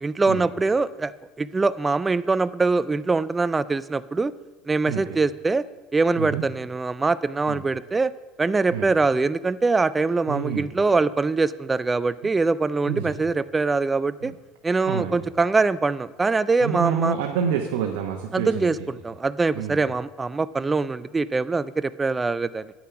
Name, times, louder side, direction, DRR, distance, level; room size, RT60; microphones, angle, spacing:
voice 1, 0.0-1.1 1.4-4.3 4.7-5.6 5.9-8.1 8.4-14.3 14.6-17.1 18.3-18.8 19.0-22.7, right 3 dB, 15° right, 16 dB, 0.3 m, -23 dB
voice 2, 4.9-5.2 6.2-6.4 7.5-7.7 8.7-8.9 10.3-10.6 12.9-13.2 14.2-14.3 14.9-15.2 16.6-18.9 19.5-19.8, right 8 dB, 85° right, 2 dB, 0.9 m, -28 dB
9.3 x 7.1 x 5.9 m, 1.2 s
cardioid pair, 145°, 0 cm